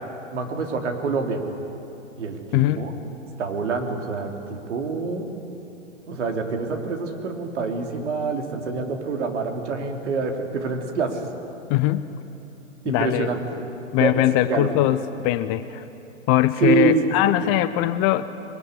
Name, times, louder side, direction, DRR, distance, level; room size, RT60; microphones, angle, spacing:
voice 1, 0.3-1.4 2.2-2.9 3.4-5.3 6.1-11.2 12.9-13.4 13.9-14.1 14.5-14.7 16.6-17.3, right 4 dB, 65° right, 3 dB, 3.4 m, -26 dB
voice 2, 2.5-2.9 11.7-12.1 12.9-13.6 13.9-15.8 16.3-18.2, left 14 dB, 25° left, 13 dB, 0.5 m, -21 dB
22.5 x 21.5 x 9.8 m, 2.8 s
hypercardioid pair, 115°, 38 cm